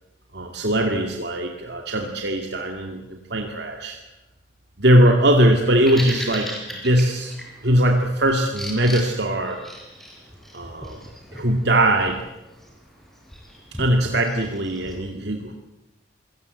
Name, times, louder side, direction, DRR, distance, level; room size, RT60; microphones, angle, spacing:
voice 1, 0.3-4.0 4.8-7.3 7.6-9.6 10.5-11.0 11.3-12.2 13.8-15.5, right 1 dB, 60° right, 3 dB, 2.3 m, -20 dB
Bird vocalization bird call bird song, 5.5-15.0, equal, ahead, 5.1 m, -38 dB
26.5 x 18.0 x 8.2 m, 0.99 s
head